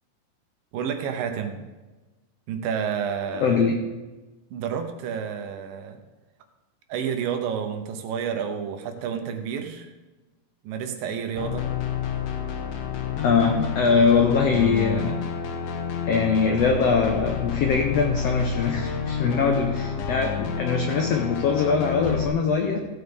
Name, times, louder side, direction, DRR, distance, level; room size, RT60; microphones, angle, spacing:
voice 1, 0.7-1.7 2.5-3.6 4.5-6.0 6.9-9.9 10.6-11.7, right 7 dB, 80° right, 6 dB, 2.7 m, -30 dB
voice 2, 3.4-3.7 13.2-15.2 16.1-22.8, left 5 dB, 90° left, 3 dB, 1.4 m, -22 dB
sound 1, 11.4-22.3, left 7 dB, 70° left, 2.4 m, -29 dB
15.5 x 8.0 x 3.5 m, 1.2 s
omnidirectional pair, 4.0 m